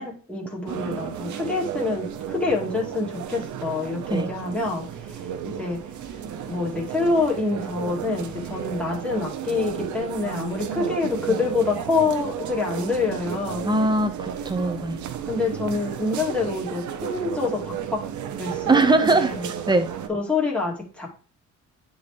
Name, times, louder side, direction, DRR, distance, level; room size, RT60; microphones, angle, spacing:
voice 1, 0.0-4.8 5.6-5.8 6.5-13.7 15.3-18.0 18.4-19.5 20.1-21.1, left 3 dB, 5° left, -4 dB, 2.4 m, -26 dB
sound 1, 0.7-20.1, right 8 dB, 75° right, 0.8 m, -33 dB
voice 2, 13.6-15.0 18.7-19.3 19.7-19.9, right 2 dB, 15° right, 7 dB, 0.9 m, -21 dB
9.3 x 4.0 x 3.1 m, 0.39 s
cardioid pair, 90°, 30 cm